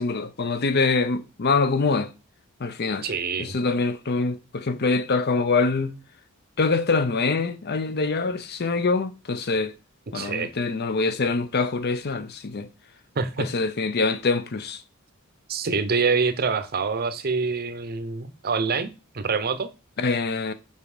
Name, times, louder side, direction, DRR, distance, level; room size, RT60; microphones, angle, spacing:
voice 1, 0.0-2.1 2.6-3.0 3.4-5.9 6.6-9.7 10.1-12.7 13.4-14.8 20.0-20.5, left 3 dB, 50° left, 0.6 m, -24 dB
voice 2, 3.0-3.6 10.1-10.5 13.2-13.5 15.5-18.9 19.1-19.7, right 5 dB, 45° right, 0.7 m, -25 dB
5.4 x 5.1 x 4.9 m
head